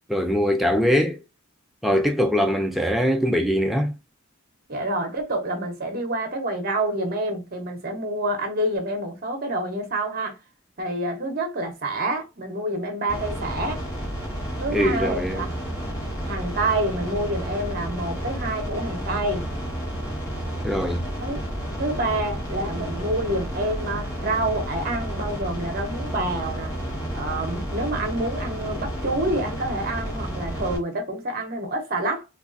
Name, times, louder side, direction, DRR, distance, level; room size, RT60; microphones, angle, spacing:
voice 1, 0.1-1.2 1.8-3.9 14.7-15.5 20.6-21.0, equal, ahead, 0.4 m, -22 dB
voice 2, 4.7-10.4 10.8-13.8 14.6-15.5 16.2-19.5 21.2-21.4 21.8-26.7 27.1-32.3, right 1 dB, 45° right, 0.9 m, -27 dB
sound 1, 13.1-30.8, equal, 15° left, 1.1 m, -31 dB
3.5 x 2.4 x 2.5 m
head